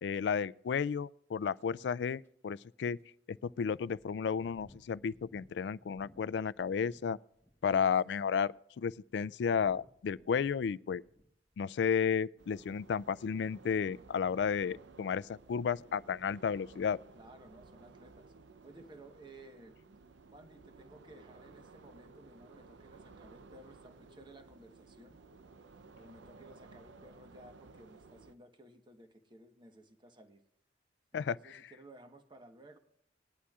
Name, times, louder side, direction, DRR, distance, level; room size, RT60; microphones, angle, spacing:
voice 1, 0.0-3.0 3.3-7.2 7.6-11.0 11.6-17.0 31.1-31.4, left 6 dB, 70° left, 0.3 m, -33 dB
sound 1, 1.6-1.7 2.2-2.3 3.0-3.1 3.7-7.1 7.3-7.8 8.5-12.0 12.3-12.6, equal, 15° left, 1.5 m, -63 dB
sound 2, 12.4-28.4, right 3 dB, 85° right, 0.6 m, -57 dB
voice 2, 17.1-18.3 18.6-19.8 20.3-25.2 26.0-30.4 31.1-32.8, right 1 dB, 25° right, 1.1 m, -56 dB
20.0 x 11.0 x 2.4 m
head